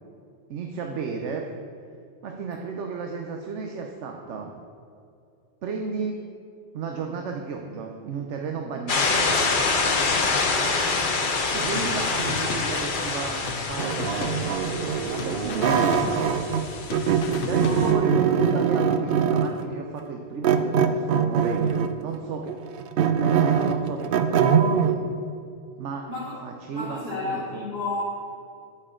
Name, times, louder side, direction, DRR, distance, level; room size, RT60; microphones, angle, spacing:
voice 1, 0.5-1.5 2.2-4.5 5.6-6.2 6.7-9.2 11.5-14.6 15.0-16.4 17.4-22.5 23.1-25.0 25.8-26.1 26.4-27.7, right 5 dB, 90° right, 2 dB, 1.0 m, -33 dB
sound 1, 8.9-17.9, left 3 dB, 50° left, 0.9 m, -26 dB
voice 2, 10.3-10.8 17.5-18.0 26.1-26.4 26.7-28.0, left 2 dB, 30° right, -12 dB, 2.4 m, -32 dB
sound 2, 11.8-13.2 13.5-14.9 15.2-16.6 16.9-18.2, left 7 dB, 85° left, 0.9 m, -36 dB
sound 3, 13.8-16.6 16.9-19.6 20.4-22.0 22.5-25.0, right 7 dB, 60° right, 0.6 m, -22 dB
9.9 x 8.6 x 3.8 m, 2.4 s
omnidirectional pair, 1.2 m